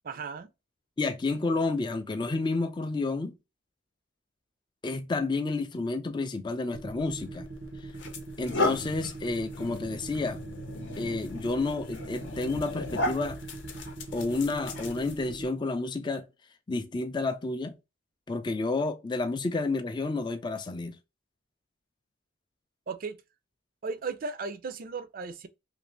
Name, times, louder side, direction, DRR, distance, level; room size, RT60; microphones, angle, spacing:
voice 1, 0.0-0.5 22.9-23.2 23.8-25.5, right 4 dB, 45° right, 0.4 m, -36 dB
voice 2, 1.0-3.3 4.8-7.5 8.4-10.4 11.0-13.4 14.1-16.3 16.7-17.7 18.3-21.0, left 3 dB, 25° left, 0.3 m, -30 dB
sound 1, 6.7-15.5, right 2 dB, 85° right, 0.7 m, -41 dB
sound 2, 7.2-7.4 7.9-15.3, left 2 dB, 60° left, 0.7 m, -35 dB
2.9 x 2.6 x 3.1 m
head